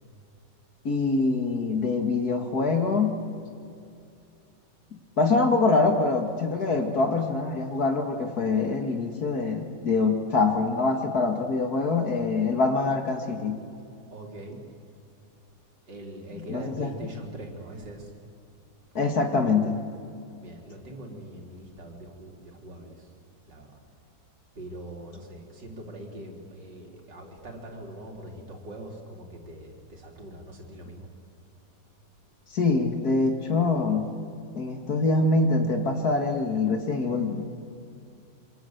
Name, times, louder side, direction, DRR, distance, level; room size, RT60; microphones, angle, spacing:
voice 1, 0.8-3.2 5.2-13.6 16.3-17.1 19.0-19.8 32.5-34.2 34.5-37.4, left 3 dB, 60° left, 5 dB, 2.3 m, -24 dB
voice 2, 14.1-14.6 15.9-18.1 20.4-23.1 23.5-23.7 24.6-31.1, right 1 dB, 75° right, 1 dB, 4.0 m, -42 dB
27.0 x 25.0 x 7.9 m, 2.5 s
omnidirectional pair, 1.9 m